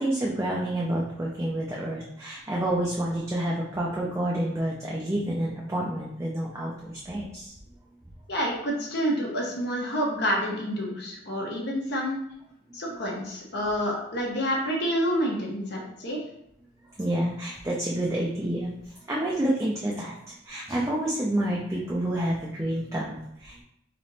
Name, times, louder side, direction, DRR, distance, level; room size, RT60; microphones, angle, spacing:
voice 1, 0.0-7.5 17.0-18.7 19.1-20.1 20.5-23.6, right 1 dB, 15° right, -4 dB, 0.5 m, -28 dB
voice 2, 8.3-12.2 12.7-16.2, equal, 55° left, -2 dB, 1.0 m, -28 dB
3.2 x 2.9 x 4.1 m, 0.75 s
head